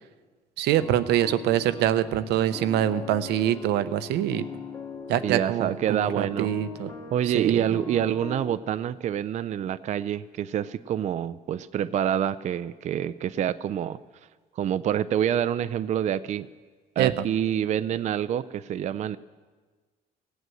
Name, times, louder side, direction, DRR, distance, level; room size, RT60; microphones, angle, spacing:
voice 1, 0.6-4.5 5.1-6.9 7.3-7.6 17.0-17.2, right 12 dB, 80° right, 13 dB, 0.7 m, -24 dB
sound 1, 0.7-8.5, left 3 dB, 20° left, 1.9 m, -40 dB
voice 2, 5.2-6.5 7.1-14.0 14.6-16.5 17.0-19.2, right 10 dB, 45° right, 14 dB, 0.4 m, -27 dB
17.0 x 8.2 x 7.7 m, 1.4 s
cardioid pair, 110°, 17 cm